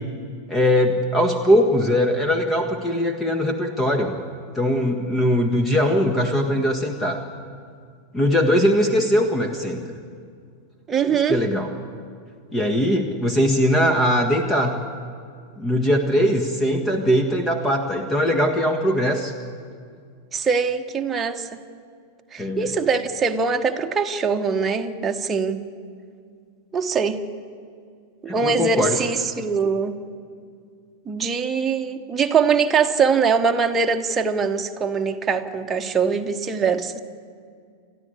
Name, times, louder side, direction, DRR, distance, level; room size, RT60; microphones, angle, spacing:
voice 1, 0.5-4.2 4.5-7.2 8.1-9.8 11.3-11.7 12.5-14.8 15.6-19.3 22.4-22.7 28.3-29.0, equal, 15° left, 6 dB, 1.7 m, -20 dB
voice 2, 10.9-11.4 20.3-21.6 22.3-25.6 26.7-27.2 28.2-30.0 31.1-37.0, right 5 dB, 20° right, 4 dB, 1.2 m, -22 dB
29.0 x 12.5 x 8.4 m, 2.2 s
figure-of-eight pair, 90°, 0 cm